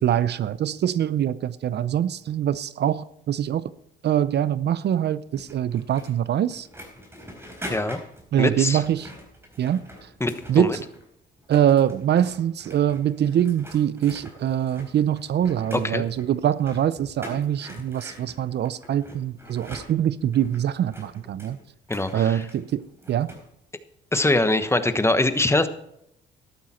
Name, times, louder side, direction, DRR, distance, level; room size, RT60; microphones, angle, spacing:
voice 1, 0.0-3.6 4.0-6.7 8.3-9.1 9.6-9.8 10.5-10.8 11.5-21.6 22.1-22.8 23.1-23.3, right 10 dB, 60° right, 0.6 m, -23 dB
sound 1, 5.3-11.1 11.4-23.5, equal, 10° right, 4.2 m, -44 dB
voice 2, 7.7-8.0 8.4-8.8 10.2-10.8 15.7-16.0 21.9-22.4 24.1-25.7, left 2 dB, 15° left, 1.2 m, -23 dB
13.5 x 12.0 x 4.3 m
cardioid pair, 90°, 20 cm